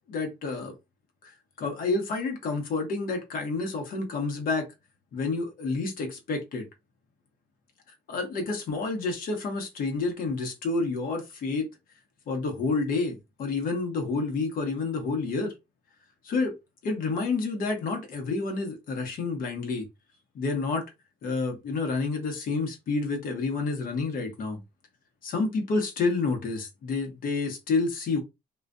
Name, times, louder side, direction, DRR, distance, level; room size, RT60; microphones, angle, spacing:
voice 1, 0.1-0.7 1.2-4.7 5.1-6.7 8.1-11.7 12.3-15.5 16.2-16.5 16.8-19.9 20.3-20.9 21.2-24.6 25.2-28.2, left 3 dB, 60° left, 1.0 m, -29 dB
2.5 x 2.4 x 2.2 m
cardioid pair, 110°, 17 cm